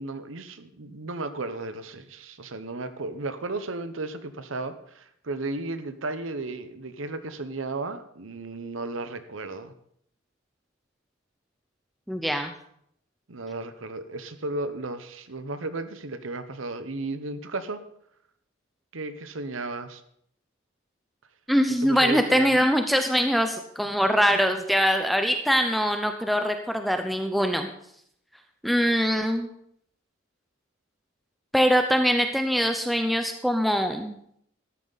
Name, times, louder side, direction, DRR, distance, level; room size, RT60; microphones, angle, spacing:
voice 1, 0.0-9.7 13.3-17.8 18.9-20.0 21.8-22.6, right 2 dB, 80° right, 11 dB, 1.0 m, -34 dB
voice 2, 12.1-12.5 21.5-27.7 28.6-29.5 31.5-34.2, equal, ahead, 6 dB, 0.6 m, -23 dB
13.5 x 11.0 x 4.1 m, 0.70 s
head